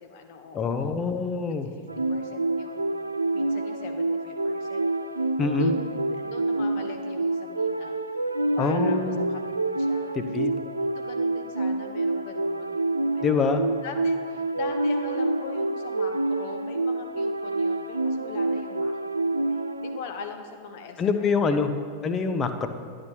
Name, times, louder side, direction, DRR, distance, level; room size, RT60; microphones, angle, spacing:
voice 1, 0.0-1.0 1.5-4.9 5.2-8.1 8.6-9.4 9.8-10.2 10.6-13.5 13.8-21.6 22.2-22.4, left 5 dB, 50° left, 5 dB, 0.9 m, -42 dB
voice 2, 0.5-1.7 5.4-5.7 8.6-9.3 10.1-10.6 13.2-13.6 21.0-21.7 22.0-22.7, left 5 dB, 25° left, 8 dB, 0.7 m, -25 dB
sound 1, 1.9-20.0, right 2 dB, 80° right, 0.3 m, -27 dB
11.5 x 8.6 x 2.9 m, 2.1 s
figure-of-eight pair, 90°, 0 cm